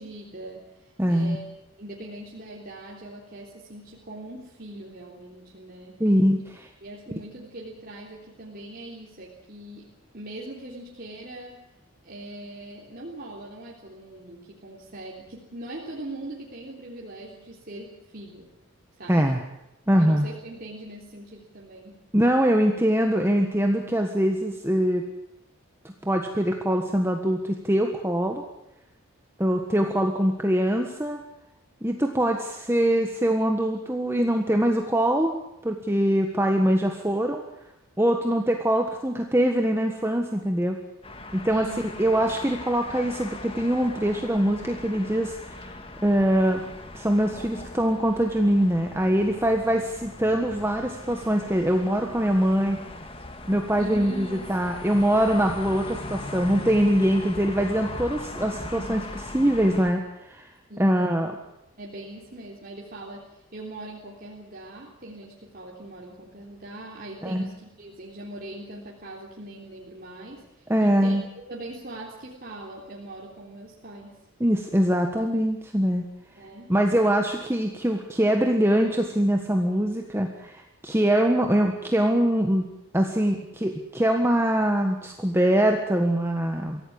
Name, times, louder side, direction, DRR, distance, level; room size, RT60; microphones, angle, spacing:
voice 1, 0.0-1.4 1.8-6.0 6.8-11.6 12.0-18.5 19.0-19.3 20.0-22.0 41.5-41.9 53.8-54.9 60.7-61.1 61.8-71.1 71.5-74.2 76.3-76.7, right 1 dB, 40° right, -3 dB, 3.4 m, -41 dB
voice 2, 1.0-1.4 6.0-6.7 19.1-19.4 19.9-20.3 22.1-25.0 26.0-28.4 29.4-31.2 31.8-35.3 35.6-37.4 38.0-40.8 41.3-41.7 42.0-45.7 46.0-46.6 46.9-52.8 53.5-60.5 60.8-61.3 67.2-67.5 70.7-71.2 74.4-76.1 76.7-82.7 82.9-86.8, equal, 10° right, 3 dB, 1.4 m, -23 dB
sound 1, 41.0-59.9, left 2 dB, 25° left, 2.0 m, -39 dB
24.0 x 16.5 x 8.8 m, 0.88 s
head